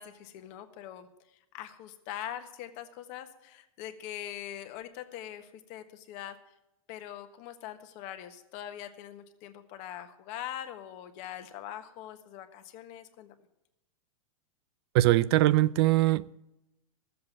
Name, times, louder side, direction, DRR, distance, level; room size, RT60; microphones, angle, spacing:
voice 1, 0.0-6.5 6.9-13.3, left 11 dB, 45° left, 1.4 m, -43 dB
voice 2, 14.9-16.3, right 16 dB, 50° right, 0.4 m, -22 dB
13.5 x 7.7 x 7.1 m
hypercardioid pair, 135°, 17 cm